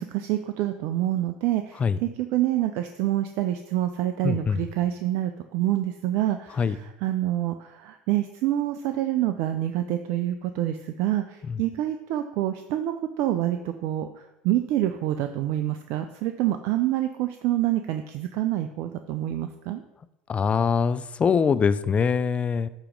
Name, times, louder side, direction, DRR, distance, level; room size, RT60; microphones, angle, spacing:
voice 1, 0.0-14.1 14.4-19.8, right 13 dB, 65° right, 8 dB, 0.4 m, -27 dB
voice 2, 4.2-4.6 6.6-6.8 11.5-11.6 20.3-22.7, left 6 dB, 30° left, 14 dB, 0.4 m, -23 dB
8.7 x 3.0 x 5.2 m, 0.91 s
hypercardioid pair, 85°, 4 cm